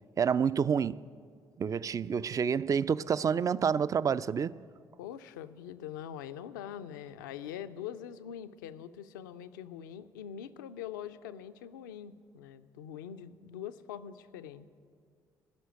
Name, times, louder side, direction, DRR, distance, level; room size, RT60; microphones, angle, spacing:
voice 1, 0.2-1.0 1.6-4.6, right 7 dB, 35° right, 0.3 m, -28 dB
voice 2, 5.0-14.7, left 9 dB, 75° left, 0.4 m, -43 dB
16.5 x 6.2 x 9.3 m
figure-of-eight pair, 40°, 10 cm